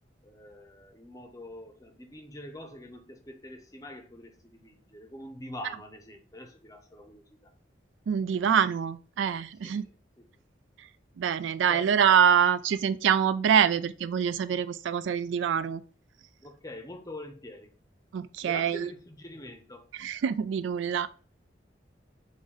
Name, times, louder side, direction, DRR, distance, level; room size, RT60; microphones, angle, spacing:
voice 1, 0.2-7.5 9.6-9.9 10.2-10.3 11.7-12.0 16.4-17.7 18.4-19.9, left 1 dB, 20° left, 0.6 m, -45 dB
voice 2, 8.1-9.8 11.2-15.8 18.1-18.9 20.0-21.1, right 7 dB, 85° right, 0.3 m, -25 dB
5.3 x 2.7 x 3.2 m
head